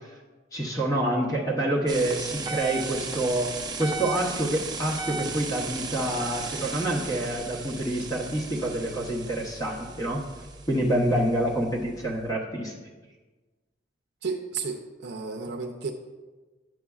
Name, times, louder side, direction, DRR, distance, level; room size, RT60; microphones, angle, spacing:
voice 1, 0.5-3.5 3.8-10.2 10.7-12.7, right 1 dB, 20° left, -2 dB, 1.0 m, -27 dB
sound 1, 1.9-12.3, right 4 dB, 25° right, 0.7 m, -36 dB
voice 2, 14.2-15.9, right 4 dB, 65° right, 2 dB, 0.6 m, -32 dB
10.5 x 7.5 x 2.4 m, 1.3 s
head